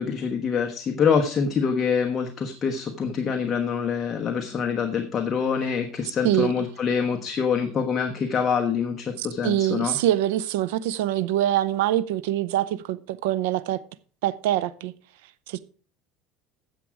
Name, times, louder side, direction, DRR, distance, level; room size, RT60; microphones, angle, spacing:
voice 1, 0.0-10.0, left 6 dB, 30° left, 1.2 m, -25 dB
voice 2, 9.2-13.8 14.2-14.9 15.5-15.6, right 13 dB, 85° right, 0.6 m, -24 dB
10.0 x 7.5 x 4.8 m
supercardioid pair, 130°, 0 cm